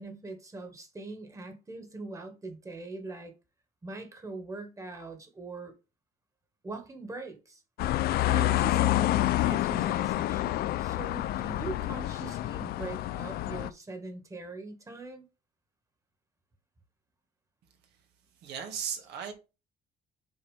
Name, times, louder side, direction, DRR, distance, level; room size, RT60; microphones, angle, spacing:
voice 1, 0.0-3.3 3.8-5.7 6.6-7.6 8.3-15.3, right 3 dB, 20° right, 1.6 m, -42 dB
sound 1, 7.8-13.7, left 15 dB, 65° left, 0.4 m, -28 dB
voice 2, 18.4-19.3, right 7 dB, 80° right, 1.7 m, -36 dB
6.9 x 4.6 x 3.3 m
cardioid pair, 110°, 17 cm